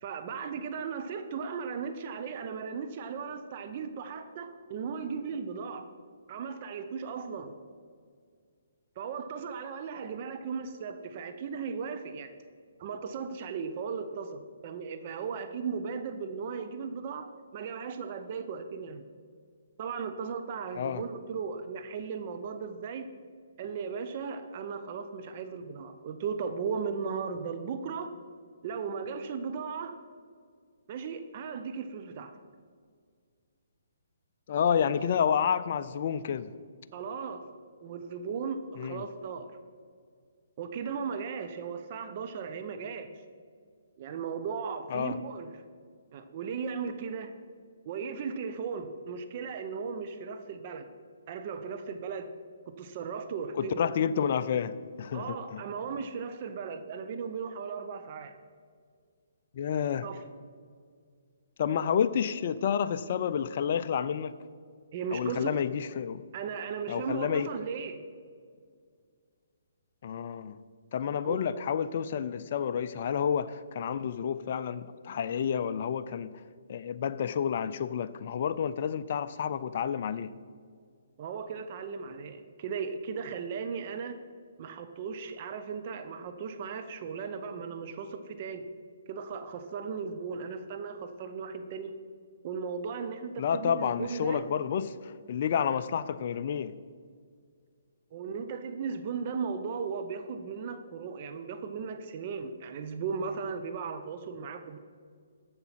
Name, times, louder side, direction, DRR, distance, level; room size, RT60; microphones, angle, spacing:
voice 1, 0.0-5.9 6.3-7.5 9.0-12.3 12.8-19.0 19.8-23.0 23.6-28.1 28.6-30.0 30.9-32.3 36.9-37.4 37.8-39.5 40.6-43.1 44.0-45.5 46.1-47.3 47.8-50.9 51.3-52.3 52.7-53.8 55.1-58.4 60.0-60.2 64.9-65.6 66.3-68.0 71.2-71.4 81.2-84.2 84.6-88.7 89.1-92.0 92.4-94.4 98.1-104.8, right 5 dB, 40° right, 8 dB, 0.7 m, -36 dB
voice 2, 34.5-36.5 38.8-39.0 44.9-45.2 53.6-55.6 59.5-60.1 61.6-64.3 65.1-66.2 66.9-67.5 70.0-70.6 70.9-76.3 76.7-80.3 93.4-96.7, left 8 dB, 50° left, 12 dB, 0.4 m, -30 dB
7.9 x 7.2 x 5.8 m, 2.1 s
hypercardioid pair, 140°, 0 cm